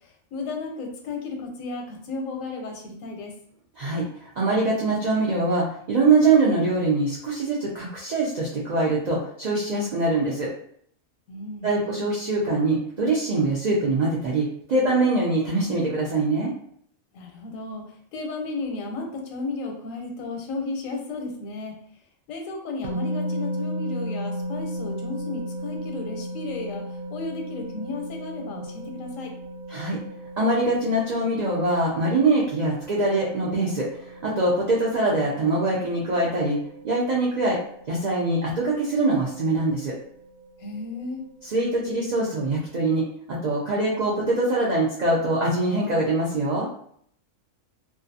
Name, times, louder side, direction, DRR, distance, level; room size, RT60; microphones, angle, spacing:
voice 1, 0.0-3.3 11.3-11.7 17.1-17.8 18.1-21.7 22.3-29.3 40.6-41.2, left 3 dB, 85° left, 2 dB, 1.0 m, -34 dB
voice 2, 4.4-10.5 11.6-16.5 29.7-30.0 30.4-36.6 36.8-37.6 37.9-39.9 41.5-46.7, right 2 dB, 85° right, -5 dB, 0.3 m, -23 dB
sound 1, 22.8-42.2, equal, 70° right, 0.8 m, -36 dB
2.4 x 2.3 x 2.6 m, 0.64 s
omnidirectional pair, 1.3 m